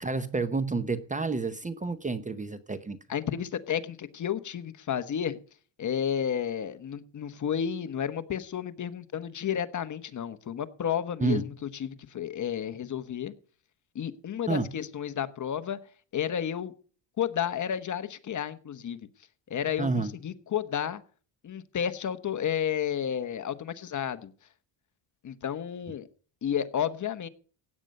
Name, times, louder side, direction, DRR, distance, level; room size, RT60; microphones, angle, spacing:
voice 1, 0.0-3.0 11.2-11.5 14.5-14.7 19.8-20.1, right 3 dB, 15° right, 0.8 m, -29 dB
voice 2, 3.1-5.4 5.8-13.3 13.9-15.8 16.1-16.7 17.2-19.0 19.5-21.0 21.4-24.3 25.2-26.1 26.4-27.3, left 9 dB, 40° left, 1.0 m, -32 dB
16.0 x 9.1 x 5.3 m
cardioid pair, 145°, 48 cm